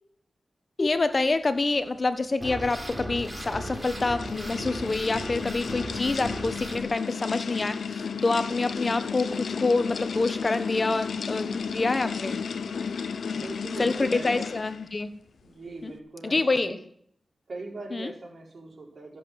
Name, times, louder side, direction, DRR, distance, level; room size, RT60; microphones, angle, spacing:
voice 1, 0.8-12.4 13.8-15.1 15.8-15.9 16.2-16.8 17.9-18.1, left 3 dB, 45° left, 11 dB, 1.2 m, -27 dB
sound 1, 2.4-6.8, right 1 dB, 20° right, 3.9 m, -36 dB
sound 2, 2.8-14.9, left 6 dB, 85° left, 0.7 m, -33 dB
voice 2, 13.2-14.5 15.4-16.8 17.5-19.2, right 2 dB, 60° right, -1 dB, 4.7 m, -40 dB
14.0 x 7.6 x 7.7 m, 0.63 s
cardioid pair, 60°, 0 cm